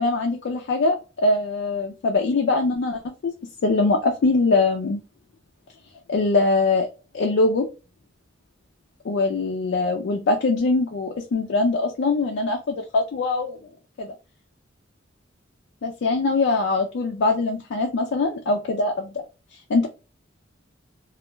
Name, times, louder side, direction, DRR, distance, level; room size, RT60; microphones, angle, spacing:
voice 1, 0.0-3.3 3.6-5.0 6.1-6.9 7.1-7.7 9.0-13.6 14.0-14.1 15.8-19.1 19.7-19.9, left 3 dB, 60° left, 2 dB, 0.4 m, -22 dB
2.3 x 2.2 x 2.9 m, 0.32 s
head